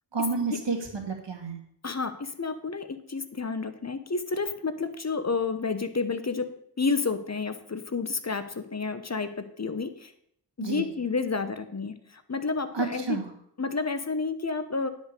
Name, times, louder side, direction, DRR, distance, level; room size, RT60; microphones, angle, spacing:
voice 1, 0.1-1.6 10.6-10.9 12.7-13.3, right 4 dB, 75° right, 3 dB, 2.0 m, -30 dB
voice 2, 1.8-6.5 6.8-10.1 10.6-13.2 13.6-14.9, left 4 dB, 40° left, 10 dB, 0.9 m, -30 dB
10.0 x 5.2 x 6.6 m, 0.68 s
wide cardioid pair, 65°, 43 cm